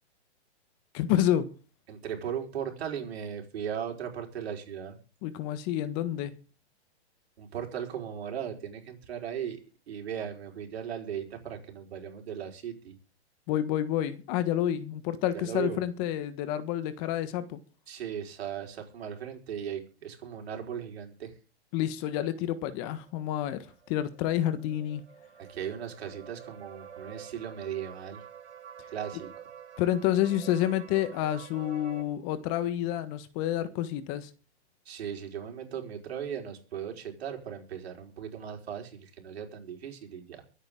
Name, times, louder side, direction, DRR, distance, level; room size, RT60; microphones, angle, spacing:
voice 1, 0.9-1.5 5.2-6.3 13.5-17.6 21.7-23.6 23.9-25.0 29.8-34.3, left 12 dB, 30° left, 1.4 m, -29 dB
voice 2, 1.9-5.0 7.4-9.6 9.9-13.0 15.3-15.8 17.9-21.3 25.4-28.2 28.9-29.3 34.8-40.4, right 8 dB, 65° right, 4.9 m, -37 dB
sound 1, 22.7-32.0, right 8 dB, 90° right, 2.8 m, -49 dB
23.5 x 9.1 x 3.8 m
hypercardioid pair, 145°, 33 cm